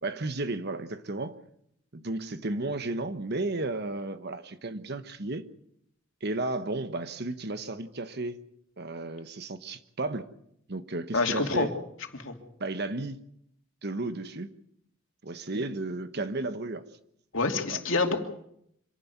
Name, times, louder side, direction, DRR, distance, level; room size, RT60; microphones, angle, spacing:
voice 1, 0.0-1.4 1.9-5.4 6.2-8.4 8.8-10.3 10.7-11.7 12.6-13.2 13.8-14.5 15.2-16.8 17.7-17.8, right 2 dB, 50° right, 1.2 m, -33 dB
voice 2, 11.1-11.7 12.1-12.3 17.3-18.2, left 3 dB, 65° left, 2.8 m, -26 dB
26.0 x 11.5 x 9.5 m
head